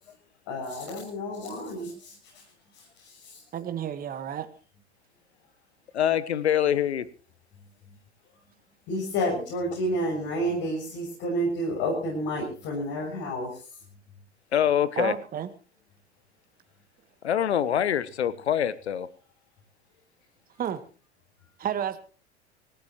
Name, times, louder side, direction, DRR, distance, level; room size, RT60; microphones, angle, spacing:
voice 1, 0.5-2.4 2.7-3.4 8.9-13.6, equal, 45° left, -2 dB, 7.3 m, -30 dB
voice 2, 3.5-4.5 15.0-15.5 20.6-20.8 21.6-22.0, right 9 dB, 25° right, 10 dB, 1.7 m, -31 dB
voice 3, 5.9-7.1 14.5-15.1 17.2-19.1, left 9 dB, 70° left, 17 dB, 1.2 m, -24 dB
26.0 x 15.0 x 3.1 m, 0.36 s
figure-of-eight pair, 85°, 34 cm